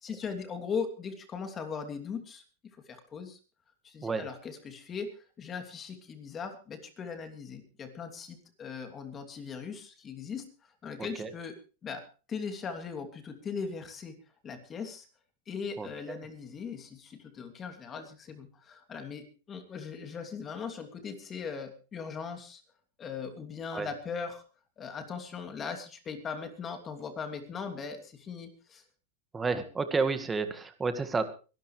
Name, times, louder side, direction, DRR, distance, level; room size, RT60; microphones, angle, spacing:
voice 1, 0.0-2.4 2.9-3.4 3.8-11.6 11.8-14.1 14.4-15.0 15.5-22.6 23.0-24.4 24.8-28.8, left 5 dB, 25° left, 7 dB, 2.8 m, -39 dB
voice 2, 15.8-16.2 23.7-23.9 29.3-31.2, right 4 dB, 15° right, 9 dB, 1.9 m, -30 dB
23.5 x 12.5 x 3.3 m, 0.35 s
supercardioid pair, 135°, 0 cm